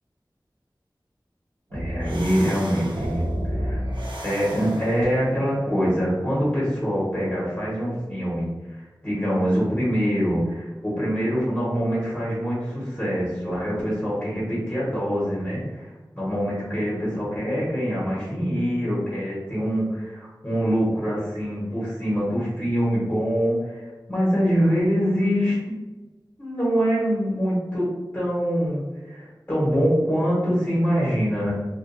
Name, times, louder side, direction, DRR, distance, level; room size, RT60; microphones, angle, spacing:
voice 1, 1.7-3.8 4.2-15.8 16.1-25.7 26.4-27.9 28.1-31.5, equal, 25° left, -10 dB, 1.0 m, -24 dB
sound 1, 1.7-5.2, equal, 75° right, 0.4 m, -30 dB
2.4 x 2.3 x 2.5 m, 1.2 s
wide cardioid pair, 45°, 8 cm